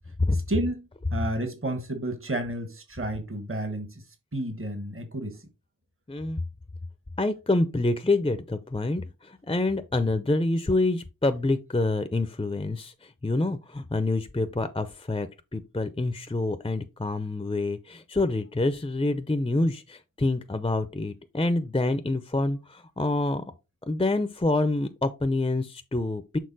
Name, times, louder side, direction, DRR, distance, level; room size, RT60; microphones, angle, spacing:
voice 1, 0.3-4.0 4.3-5.5, right 1 dB, 40° right, 1.2 m, -31 dB
voice 2, 6.1-6.4 7.2-23.4 23.9-26.4, left 2 dB, 15° left, 0.6 m, -27 dB
6.6 x 4.0 x 4.0 m
wide cardioid pair, 60°, 33 cm